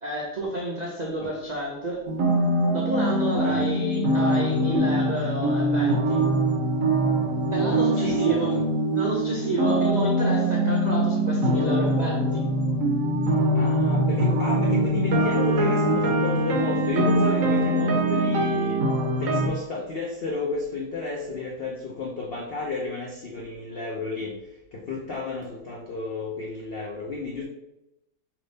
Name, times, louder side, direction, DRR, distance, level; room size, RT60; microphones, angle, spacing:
voice 1, 0.0-2.0 2.7-6.2 7.5-8.5 8.9-12.4, right 1 dB, 85° right, -3 dB, 0.3 m, -30 dB
sound 1, 2.1-19.5, right 1 dB, 65° right, 1.0 m, -23 dB
voice 2, 7.9-8.6 13.2-18.8 19.2-27.4, left 3 dB, 85° left, -1 dB, 0.5 m, -32 dB
3.5 x 2.9 x 3.9 m, 0.92 s
omnidirectional pair, 1.7 m